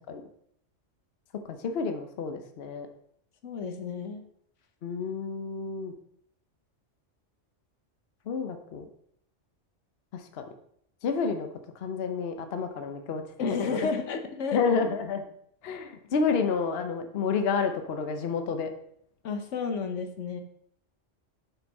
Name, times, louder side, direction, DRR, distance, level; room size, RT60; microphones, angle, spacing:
voice 1, 1.5-2.9 4.8-5.9 8.3-8.9 10.1-10.4 11.0-11.5 11.8-13.2 13.7-13.8 14.5-15.2 15.6-18.7, left 5 dB, 60° left, 7 dB, 0.9 m, -29 dB
voice 2, 3.4-4.2 13.4-14.6 19.2-20.4, left 5 dB, 75° left, 6 dB, 1.2 m, -31 dB
7.0 x 5.9 x 4.1 m, 0.69 s
omnidirectional pair, 1.3 m